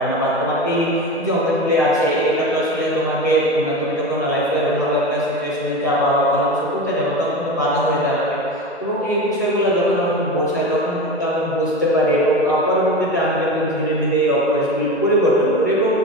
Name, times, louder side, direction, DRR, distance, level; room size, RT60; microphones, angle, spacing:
voice 1, 0.0-8.4 8.8-15.9, equal, 15° left, -9 dB, 0.6 m, -20 dB
7.0 x 4.0 x 3.9 m, 3.0 s
figure-of-eight pair, 160°, 34 cm